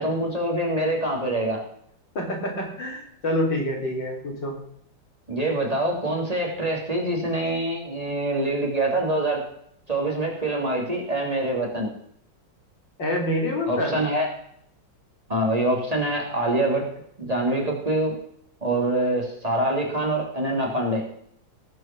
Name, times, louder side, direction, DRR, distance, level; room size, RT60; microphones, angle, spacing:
voice 1, 0.0-1.6 5.3-9.4 9.9-11.9 13.7-14.3 15.3-16.8 17.2-18.1 18.6-21.0, right 1 dB, 20° right, -1 dB, 3.2 m, -25 dB
voice 2, 2.2-4.6 13.0-14.1, left 1 dB, 70° left, -1 dB, 4.1 m, -27 dB
18.5 x 6.3 x 6.1 m, 0.67 s
omnidirectional pair, 2.0 m